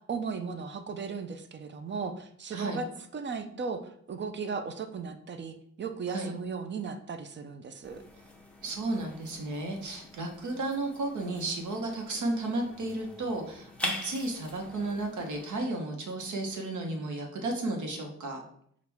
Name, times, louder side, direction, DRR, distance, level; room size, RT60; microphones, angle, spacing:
voice 1, 0.0-2.9 3.1-3.8 4.1-8.0, right 5 dB, 40° right, 8 dB, 0.5 m, -36 dB
voice 2, 2.5-2.8 6.1-6.3 8.6-18.4, right 2 dB, 80° right, 2 dB, 1.0 m, -33 dB
sound 1, 7.8-15.6, left 1 dB, 5° left, 0.6 m, -43 dB
6.1 x 2.4 x 3.4 m, 0.66 s
wide cardioid pair, 140°, 29 cm